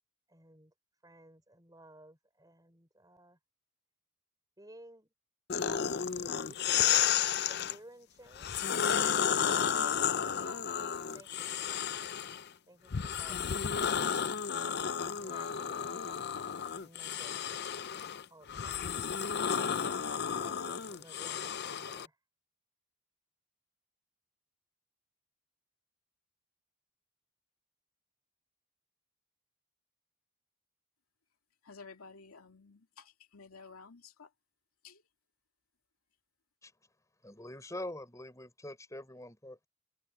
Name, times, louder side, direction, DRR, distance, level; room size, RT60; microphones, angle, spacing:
voice 1, 0.3-0.7 1.0-3.4 4.6-5.1 5.6-5.9 6.2-6.6 6.8-7.2 7.5-8.6 9.0-10.8 11.1-11.9 12.7-14.3 15.1-16.2 16.8-17.7 18.3-19.1 20.3-22.2, right 1 dB, 15° right, 4.1 m, -56 dB
sound 1, 5.5-7.8 8.3-12.4 12.9-22.1, left 8 dB, 50° left, 0.6 m, -32 dB
voice 2, 31.6-34.3 34.8-35.0, left 4 dB, 85° left, 2.5 m, -53 dB
voice 3, 37.2-39.7, left 1 dB, 15° left, 5.6 m, -44 dB
head